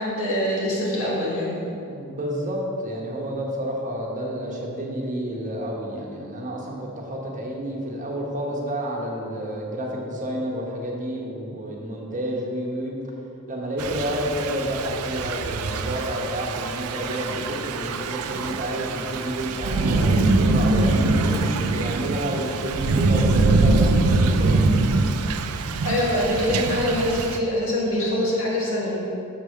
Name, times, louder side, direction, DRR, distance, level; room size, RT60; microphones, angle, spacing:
voice 1, 0.0-1.6 25.8-29.0, left 1 dB, 65° left, -5 dB, 2.0 m, -24 dB
voice 2, 1.8-12.9 13.5-24.7, equal, 35° right, -2 dB, 1.1 m, -30 dB
Thunder / Rain, 13.8-27.4, right 3 dB, 75° right, 0.5 m, -23 dB
6.8 x 4.8 x 6.5 m, 2.7 s
head